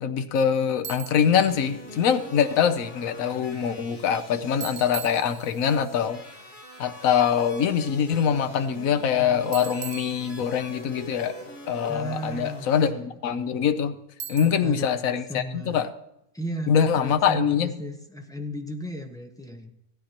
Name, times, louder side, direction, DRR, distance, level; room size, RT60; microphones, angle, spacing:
voice 1, 0.0-6.2 6.8-11.3 11.7-13.9 14.3-15.9 16.7-17.7, left 8 dB, 75° left, 9 dB, 1.2 m, -24 dB
Bicycle, 0.8-1.4 4.6-5.8 9.5-10.8 14.2-14.9, right 8 dB, 60° right, 0.8 m, -39 dB
sound 1, 1.2-12.9, equal, 35° left, 1.7 m, -44 dB
voice 2, 11.9-13.1 14.4-14.9 15.3-15.9 16.3-19.7, equal, 5° left, 3 dB, 0.8 m, -35 dB
15.5 x 12.5 x 2.9 m, 0.84 s
omnidirectional pair, 1.5 m